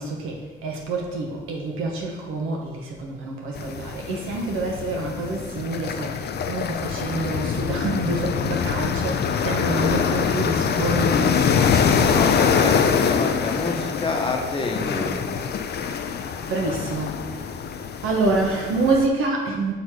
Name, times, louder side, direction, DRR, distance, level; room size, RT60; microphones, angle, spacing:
voice 1, 0.0-12.7 16.5-17.2 18.0-19.7, right 3 dB, 85° right, 0 dB, 1.3 m, -27 dB
sound 1, 3.6-19.1, left 6 dB, 55° left, 0.5 m, -24 dB
voice 2, 12.0-15.3, left 3 dB, 25° left, 2 dB, 1.0 m, -28 dB
6.1 x 4.1 x 4.7 m, 1.3 s
cardioid pair, 85°, 21 cm